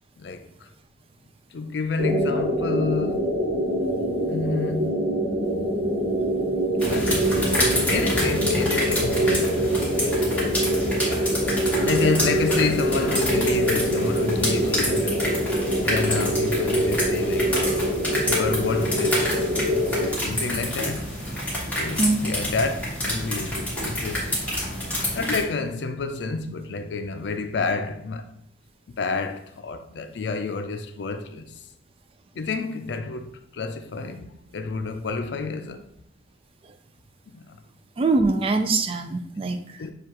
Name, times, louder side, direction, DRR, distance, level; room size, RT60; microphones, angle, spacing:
voice 1, 0.2-0.7 1.5-3.4 4.3-5.1 6.9-7.4 7.9-10.1 11.8-15.3 15.7-19.4 19.8-19.9 20.2-21.2 21.8-24.5 25.2-28.3 29.0-31.5 32.4-35.8 37.3-37.6 39.8-39.9, left 4 dB, 75° left, 0.4 m, -29 dB
sound 1, 2.0-20.1, equal, 75° right, 0.7 m, -24 dB
sound 2, 6.8-25.4, left 1 dB, 10° left, 1.2 m, -28 dB
voice 2, 38.0-39.8, right 3 dB, 35° right, 0.4 m, -23 dB
6.5 x 2.4 x 2.9 m
head